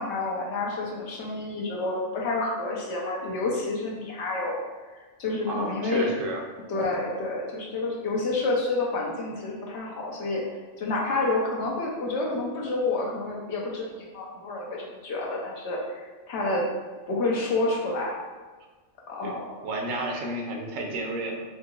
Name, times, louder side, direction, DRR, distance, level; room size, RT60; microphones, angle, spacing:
voice 1, 0.0-4.6 4.9-6.1 6.7-10.4 10.8-16.7 17.1-18.1 19.1-19.5, left 2 dB, 65° left, -2 dB, 0.9 m, -29 dB
voice 2, 5.5-6.4 19.2-19.3 19.6-21.4, right 1 dB, 90° right, 1 dB, 1.0 m, -31 dB
3.7 x 2.7 x 2.3 m, 1.3 s
omnidirectional pair, 1.3 m